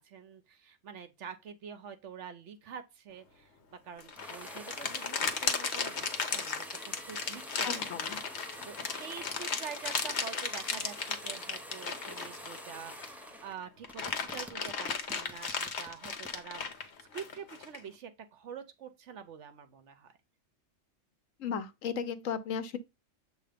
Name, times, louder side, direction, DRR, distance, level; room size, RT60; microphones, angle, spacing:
voice 1, 0.0-7.8 8.3-16.6 17.1-20.1, right 7 dB, 70° right, 1.0 m, -46 dB
sound 1, 4.0-13.2 13.6-17.8, left 5 dB, 60° left, 1.2 m, -35 dB
sound 2, 4.2-13.6 13.9-16.4, equal, ahead, 0.5 m, -47 dB
voice 2, 7.6-8.2 21.4-22.8, left 7 dB, 80° left, 1.1 m, -35 dB
7.7 x 2.8 x 5.0 m
omnidirectional pair, 1.3 m